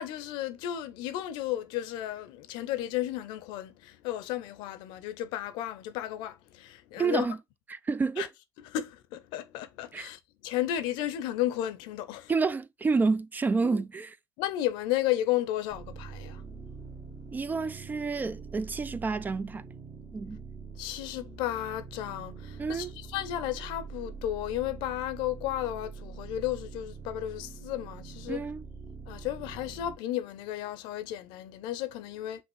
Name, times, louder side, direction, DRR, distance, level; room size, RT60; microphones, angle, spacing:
voice 1, 0.0-7.3 8.2-8.3 8.6-12.3 13.6-13.8 14.4-16.7 17.0-17.2 20.8-28.4 29.0-32.4, left 13 dB, 70° left, 0.6 m, -33 dB
voice 2, 7.0-7.4 7.7-8.3 9.9-10.1 12.3-14.1 17.3-19.6 20.1-20.4 22.6-22.9 28.3-28.6, right 4 dB, 20° right, 0.3 m, -29 dB
sound 1, 15.7-30.0, right 5 dB, 35° right, 1.2 m, -44 dB
6.1 x 2.5 x 3.2 m
hypercardioid pair, 75°, 8 cm